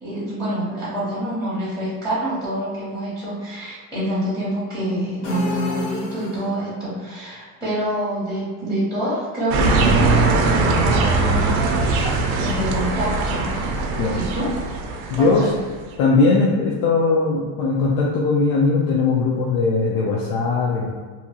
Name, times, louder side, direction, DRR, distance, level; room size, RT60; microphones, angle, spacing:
voice 1, 0.0-11.7 12.0-13.5 14.1-14.5 15.2-15.6, right 1 dB, 5° left, -13 dB, 0.6 m, -27 dB
sound 1, 5.2-6.8, left 3 dB, 85° left, 1.0 m, -30 dB
sound 2, 9.5-15.7, right 3 dB, 65° right, 0.5 m, -20 dB
voice 2, 15.1-15.5 16.0-20.9, left 3 dB, 70° left, -4 dB, 0.6 m, -19 dB
2.8 x 2.3 x 2.8 m, 1.5 s
cardioid pair, 180°, 49 cm